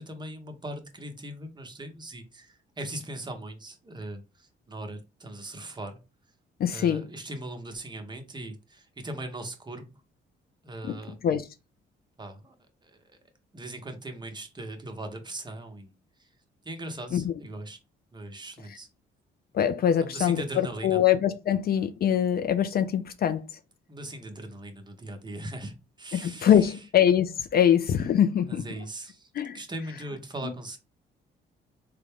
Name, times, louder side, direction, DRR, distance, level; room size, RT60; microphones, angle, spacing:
voice 1, 0.0-6.0 6.7-9.9 10.6-11.2 12.2-12.5 12.8-13.2 13.5-15.9 16.2-16.3 16.6-17.8 18.1-18.9 19.9-21.0 23.9-26.8 28.5-30.8, right 1 dB, 20° right, 0.8 m, -39 dB
voice 2, 6.6-7.0 11.2-11.4 17.1-17.3 19.5-23.4 26.1-28.6 29.3-29.6, left 9 dB, 50° left, 0.4 m, -23 dB
3.7 x 2.2 x 3.5 m
cardioid pair, 90°, 20 cm